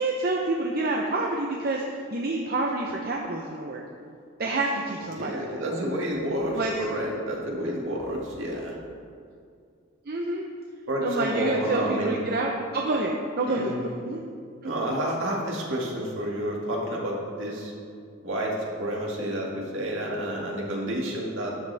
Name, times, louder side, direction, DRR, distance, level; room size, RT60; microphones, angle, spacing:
voice 1, 0.0-1.8 2.1-3.8 4.4-5.6 6.6-6.8 10.1-10.5 11.0-14.2 14.6-14.7, right 2 dB, 50° right, 0 dB, 0.8 m, -28 dB
voice 2, 5.2-8.8 10.9-12.2 13.5-13.9 14.6-17.7 18.2-21.6, equal, 65° right, -2 dB, 2.2 m, -29 dB
12.5 x 9.4 x 3.5 m, 2.3 s
head